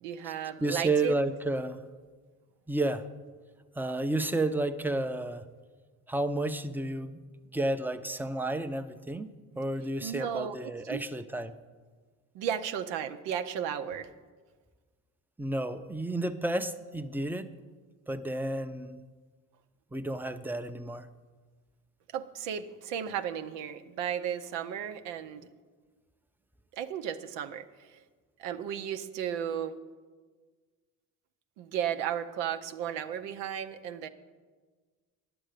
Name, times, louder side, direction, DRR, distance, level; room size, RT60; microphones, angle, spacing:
voice 1, 0.0-1.1 10.0-10.6 10.9-11.0 12.3-14.1 22.1-25.5 26.7-28.0 28.4-29.8 31.6-34.1, right 9 dB, 80° right, 7 dB, 0.7 m, -34 dB
voice 2, 0.6-1.8 2.7-3.0 3.8-5.4 6.1-7.2 7.5-11.5 15.4-17.5 18.1-19.0 19.9-21.1, right 2 dB, 5° right, 9 dB, 0.6 m, -31 dB
10.0 x 7.9 x 6.6 m, 1.4 s
hypercardioid pair, 55°, 42 cm